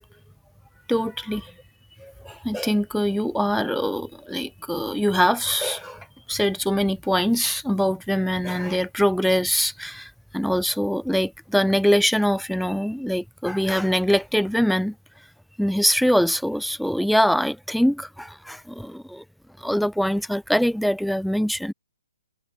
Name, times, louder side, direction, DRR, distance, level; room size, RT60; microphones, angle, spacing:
voice 1, 0.9-1.5 2.0-14.9 15.6-19.2 19.6-21.7, equal, ahead, 0.5 m, -23 dB
figure-of-eight pair, 130°, 0 cm